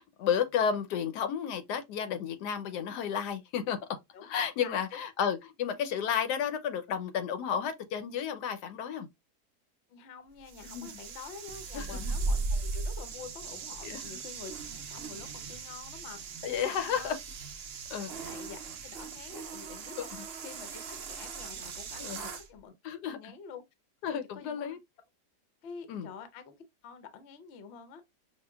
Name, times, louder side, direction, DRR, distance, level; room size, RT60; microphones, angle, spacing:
voice 1, 0.0-3.8 4.2-9.1 10.6-10.9 11.7-12.1 13.8-14.2 16.4-17.2 17.9-18.1 20.0-20.2 22.0-22.2 22.8-23.3 24.0-24.8 25.9-26.1, left 8 dB, 80° left, 1.2 m, -32 dB
voice 2, 4.1-5.0 9.9-17.1 18.0-20.8 21.1-22.7 23.0-23.6 24.1-24.8 25.6-26.5 26.8-28.0, left 5 dB, 55° left, 0.8 m, -48 dB
sound 1, 10.5-22.5, right 3 dB, 75° right, 0.5 m, -38 dB
5.5 x 2.4 x 2.2 m
omnidirectional pair, 1.8 m